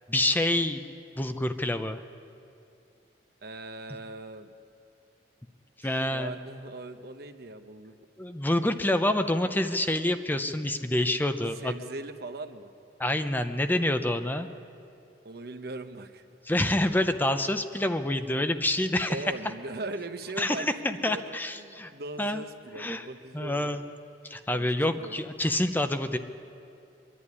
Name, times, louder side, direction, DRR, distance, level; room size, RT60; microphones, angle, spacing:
voice 1, 0.1-0.8 1.2-2.0 5.8-6.4 8.2-11.7 13.0-14.5 16.5-19.2 20.4-21.9 22.2-22.4 22.8-23.0 23.3-23.8 24.2-26.2, left 1 dB, 10° left, 9 dB, 0.6 m, -27 dB
voice 2, 3.4-4.5 5.8-8.0 11.5-12.7 15.2-16.2 19.1-23.8 24.5-25.2, right 2 dB, 60° right, 8 dB, 1.1 m, -40 dB
23.5 x 11.5 x 9.7 m, 2.6 s
head